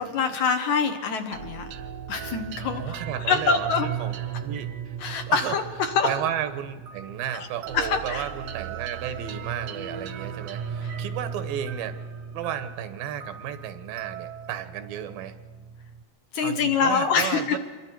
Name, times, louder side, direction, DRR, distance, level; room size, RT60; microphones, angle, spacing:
voice 1, 0.0-1.7 2.1-3.9 5.0-6.1 7.3-7.5 7.7-8.3 10.8-11.0 16.3-17.6, left 5 dB, 70° left, 6 dB, 2.0 m, -25 dB
sound 1, 1.3-16.0, right 7 dB, 65° right, 1.7 m, -37 dB
voice 2, 2.8-3.7 4.0-4.9 5.3-5.6 6.0-12.0 12.3-15.4 16.4-17.6, right 10 dB, 85° right, 10 dB, 2.7 m, -33 dB
26.5 x 22.5 x 4.6 m, 1.5 s
omnidirectional pair, 4.1 m